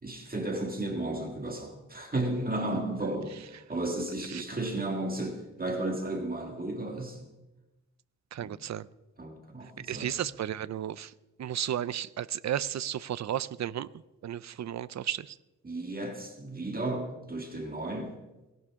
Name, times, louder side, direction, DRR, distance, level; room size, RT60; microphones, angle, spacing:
voice 1, 0.0-7.3 8.4-8.6 9.2-10.2 15.6-18.2, right 2 dB, 30° right, 2 dB, 1.8 m, -34 dB
voice 2, 8.3-8.9 9.9-11.1 11.4-13.9 14.2-15.3, right 10 dB, 60° right, 17 dB, 0.5 m, -33 dB
18.5 x 16.5 x 3.6 m, 1.1 s
wide cardioid pair, 150°, 32 cm